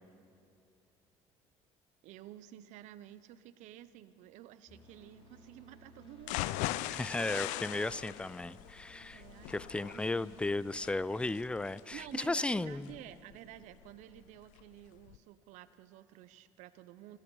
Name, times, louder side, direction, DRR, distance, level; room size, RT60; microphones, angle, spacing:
voice 1, 2.0-6.6 9.0-9.6 9.9-10.7 11.9-17.2, right 13 dB, 75° right, 15 dB, 0.6 m, -52 dB
sound 1, 4.7-11.3, equal, 50° left, 4.0 m, -58 dB
sound 2, 6.2-14.2 14.6-14.7 15.1-15.2, left 16 dB, 85° left, 0.4 m, -40 dB
voice 2, 6.9-12.9, left 2 dB, 10° left, 19 dB, 0.4 m, -35 dB
24.5 x 10.0 x 5.4 m, 2.6 s
supercardioid pair, 85°, 12 cm